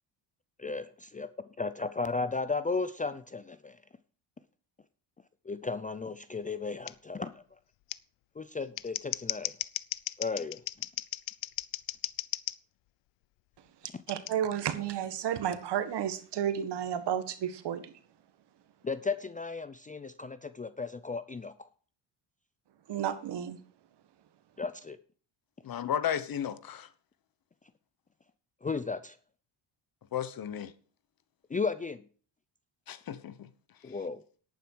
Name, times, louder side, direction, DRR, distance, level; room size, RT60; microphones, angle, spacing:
voice 1, 0.6-3.8 5.5-7.4 8.4-9.6 10.2-10.6 13.9-14.0 18.8-21.5 24.6-25.0 28.6-29.2 31.5-32.0 33.8-34.2, left 4 dB, 15° left, 0.5 m, -35 dB
Scissors, 6.9-7.0 7.9-8.0 8.6-12.6 14.1-14.3, left 17 dB, 75° left, 0.7 m, -36 dB
voice 2, 14.1-17.9 22.9-23.6, right 9 dB, 60° right, 1.7 m, -32 dB
voice 3, 25.6-26.9 30.1-30.7 32.9-33.5 33.9-34.0, left 9 dB, 50° left, 1.1 m, -34 dB
11.0 x 9.3 x 4.7 m
cardioid pair, 105°, 46 cm